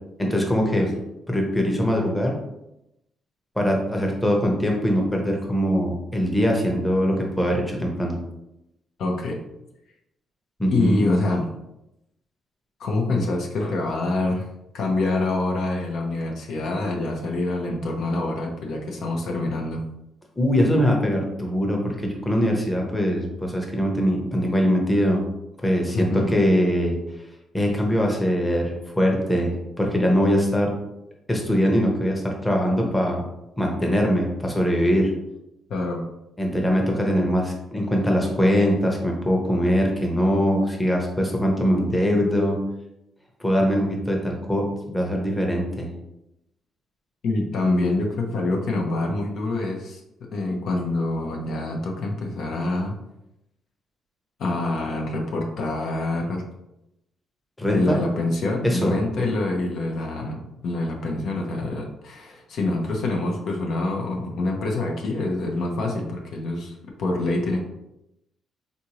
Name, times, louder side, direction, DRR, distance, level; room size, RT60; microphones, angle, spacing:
voice 1, 0.2-0.9 1.3-2.4 3.6-8.2 10.6-11.0 20.4-25.2 25.6-27.0 27.5-30.7 31.3-33.2 33.6-35.1 36.4-42.6 43.4-45.9 57.6-58.0 58.6-58.9, equal, 10° left, 0 dB, 0.8 m, -22 dB
voice 2, 9.0-9.4 10.7-11.5 12.8-14.5 14.7-19.8 25.9-26.3 35.7-36.0 47.2-50.0 50.3-53.0 54.4-56.4 57.7-67.6, left 2 dB, 70° left, 1 dB, 0.6 m, -26 dB
3.7 x 2.6 x 2.9 m, 0.88 s
cardioid pair, 90°, 0 cm